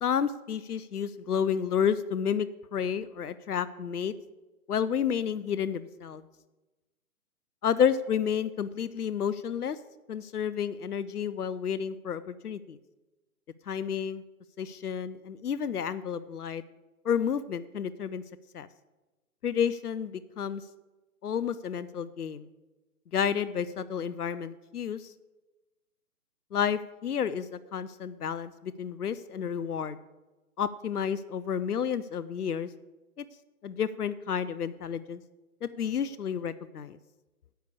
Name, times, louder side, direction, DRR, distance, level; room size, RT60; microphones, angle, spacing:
voice 1, 0.0-4.1 4.7-6.2 7.6-9.8 10.1-12.8 13.7-14.2 14.6-16.6 17.0-18.2 18.5-18.7 19.4-20.6 21.2-22.5 23.1-25.1 26.5-30.0 30.6-32.7 33.2-33.3 33.6-35.2 35.6-37.0, left 8 dB, 85° left, 15 dB, 0.6 m, -30 dB
10.0 x 8.2 x 6.9 m, 1.1 s
figure-of-eight pair, 135°, 45 cm